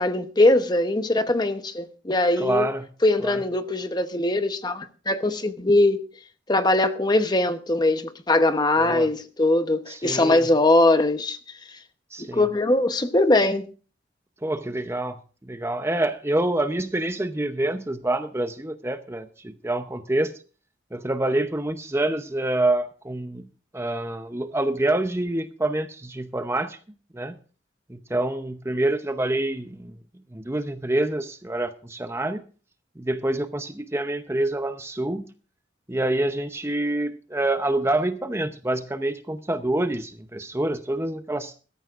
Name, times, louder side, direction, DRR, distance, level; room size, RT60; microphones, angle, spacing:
voice 1, 0.0-2.7 3.0-6.0 6.5-11.4 12.3-13.7, left 2 dB, 25° left, 0.9 m, -21 dB
voice 2, 2.4-2.9 3.2-3.4 8.8-9.1 9.9-10.5 12.1-12.5 14.4-20.3 20.9-23.5 23.7-26.8 27.1-27.3 27.9-29.9 30.3-32.4 33.0-35.3 35.9-41.5, right 1 dB, 15° right, 0.7 m, -27 dB
21.5 x 13.5 x 2.5 m
head